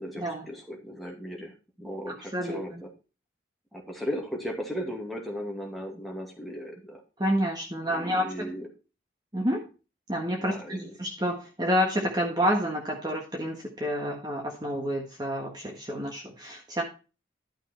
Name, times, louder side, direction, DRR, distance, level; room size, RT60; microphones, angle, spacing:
voice 1, 0.0-1.5 1.8-2.9 3.7-7.0 7.8-8.7 10.4-10.8, equal, ahead, -1 dB, 2.2 m, -36 dB
voice 2, 2.1-2.8 7.2-8.5 9.3-9.6 10.1-16.8, equal, 20° right, 0 dB, 1.6 m, -29 dB
11.5 x 6.0 x 4.4 m, 0.32 s
head